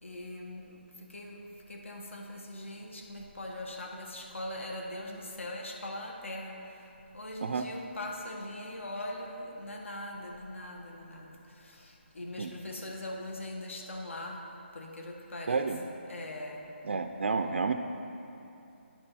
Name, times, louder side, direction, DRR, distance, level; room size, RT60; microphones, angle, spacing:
voice 1, 0.0-0.8 1.1-1.4 1.7-6.6 7.1-11.3 11.6-14.4 14.7-17.0, left 1 dB, 85° left, 0 dB, 1.4 m, -41 dB
voice 2, 15.5-15.8 16.9-17.7, right 4 dB, 70° right, 6 dB, 0.4 m, -30 dB
9.9 x 4.4 x 5.7 m, 2.8 s
hypercardioid pair, 180°, 7 cm